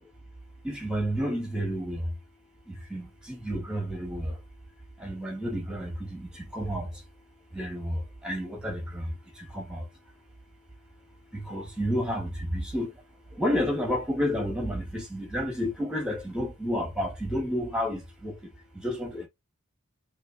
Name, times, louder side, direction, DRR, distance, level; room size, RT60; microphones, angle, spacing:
voice 1, 0.6-2.0 2.9-4.3 5.0-6.9 7.5-8.0 8.2-9.0 9.5-9.8 11.3-12.9 13.4-18.3 18.8-19.3, equal, 5° right, 1.7 m, -30 dB
4.3 x 3.0 x 2.6 m
head